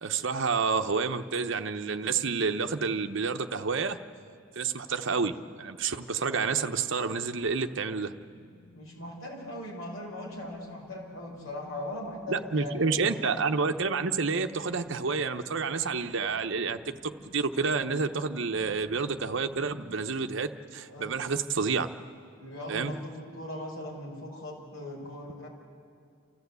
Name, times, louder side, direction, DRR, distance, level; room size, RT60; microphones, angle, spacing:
voice 1, 0.0-4.0 4.6-8.1 12.3-21.9 22.7-22.9, right 5 dB, 60° right, 7 dB, 0.8 m, -29 dB
sound 1, 4.4-20.0, left 3 dB, 40° left, 1.4 m, -55 dB
voice 2, 8.7-13.4 20.9-21.2 22.4-25.5, left 1 dB, 80° left, -2 dB, 5.0 m, -39 dB
29.0 x 14.0 x 8.2 m, 2.3 s
head